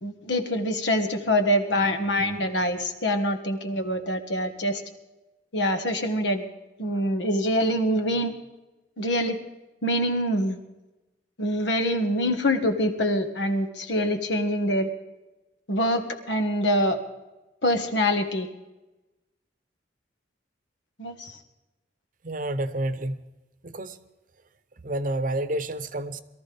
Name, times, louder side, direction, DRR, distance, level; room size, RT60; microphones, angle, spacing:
voice 1, 0.0-4.8 5.5-6.4 6.8-8.3 9.0-9.4 9.8-10.6 11.4-14.9 15.7-17.0 17.6-18.5 21.0-21.4, equal, 85° left, 6 dB, 1.6 m, -25 dB
voice 2, 22.2-23.2 23.6-24.0 24.8-26.2, right 1 dB, 50° right, 12 dB, 0.8 m, -29 dB
22.5 x 13.5 x 3.5 m, 1.1 s
head